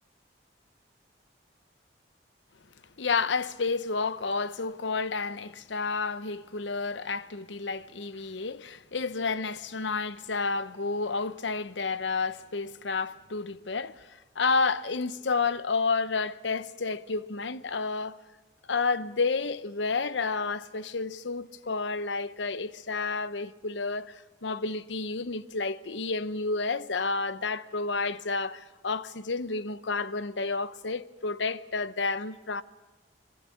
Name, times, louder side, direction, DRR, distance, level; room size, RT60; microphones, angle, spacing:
voice 1, 3.0-14.1 14.3-18.2 18.7-32.6, left 4 dB, 80° left, 0.9 m, -30 dB
26.0 x 22.5 x 8.5 m
head